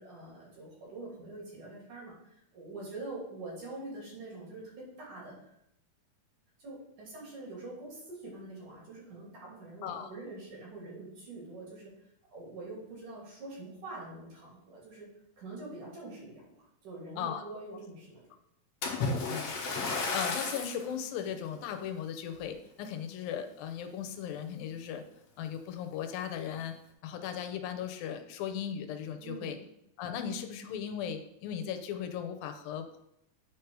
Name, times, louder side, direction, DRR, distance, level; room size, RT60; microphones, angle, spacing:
voice 1, 0.0-5.6 6.6-11.9 12.3-15.1 15.4-16.5 16.8-18.2 29.2-29.6, right 2 dB, 60° right, -4 dB, 4.2 m, -45 dB
Splash splatter, 18.8-20.9 21.5-21.7 22.3-22.4, left 3 dB, 60° left, 2.0 m, -33 dB
voice 2, 19.8-25.0 25.4-26.8 27.0-29.6 30.0-33.0, left 8 dB, 80° left, 7 dB, 2.5 m, -37 dB
9.2 x 4.7 x 4.8 m, 0.79 s
omnidirectional pair, 4.1 m